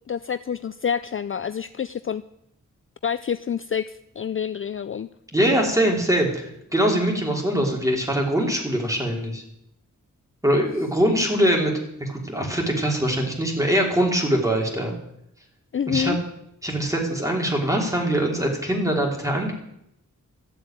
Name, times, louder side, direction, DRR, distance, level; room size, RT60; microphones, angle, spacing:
voice 1, 0.1-2.2 3.0-5.1 15.7-16.2, left 7 dB, 40° left, 12 dB, 0.4 m, -27 dB
voice 2, 5.3-9.4 10.4-11.7 12.0-15.0 15.9-16.1 16.6-19.5, right 1 dB, 10° right, 0 dB, 3.4 m, -22 dB
13.5 x 7.8 x 9.0 m, 0.78 s
wide cardioid pair, 125°, 32 cm